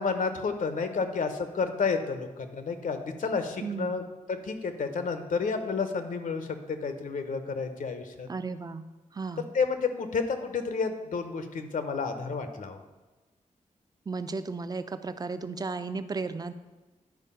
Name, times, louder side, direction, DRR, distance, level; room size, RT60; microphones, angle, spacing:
voice 1, 0.0-4.0 4.3-8.3 9.5-12.8, left 5 dB, 80° left, 7 dB, 1.0 m, -30 dB
voice 2, 3.6-4.0 8.3-8.8 9.1-9.5 14.1-16.5, right 4 dB, 30° right, 11 dB, 0.5 m, -34 dB
10.5 x 4.7 x 5.6 m, 1.2 s
wide cardioid pair, 130°, 14 cm